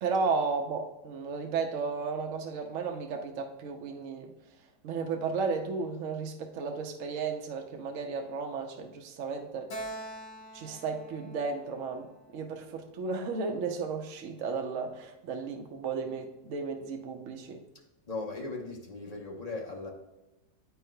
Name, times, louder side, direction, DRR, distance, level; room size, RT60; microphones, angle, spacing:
voice 1, 0.0-4.3 4.8-9.7 10.5-17.6, right 4 dB, 60° right, 3 dB, 0.9 m, -34 dB
Keyboard (musical), 9.7-13.2, right 1 dB, 65° left, 1.5 m, -45 dB
voice 2, 18.1-19.9, left 3 dB, 30° left, -2 dB, 0.8 m, -38 dB
9.5 x 4.6 x 2.3 m, 1.0 s
omnidirectional pair, 1.9 m